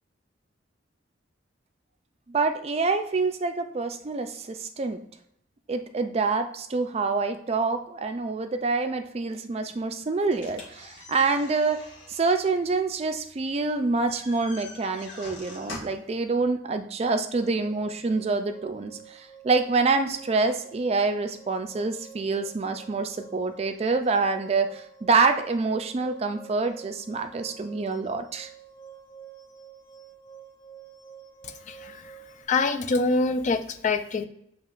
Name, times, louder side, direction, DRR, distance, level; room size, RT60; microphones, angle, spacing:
voice 1, 2.3-5.0 5.7-11.8 12.1-28.5, right 4 dB, 35° right, 7 dB, 0.4 m, -26 dB
sound 1, 10.3-16.1, left 2 dB, 75° left, 1.5 m, -45 dB
sound 2, 17.3-32.4, right 8 dB, 15° left, 0.9 m, -49 dB
voice 2, 31.4-32.1 32.5-34.3, left 3 dB, 40° left, 9 dB, 0.4 m, -25 dB
7.2 x 2.9 x 2.4 m, 0.71 s
head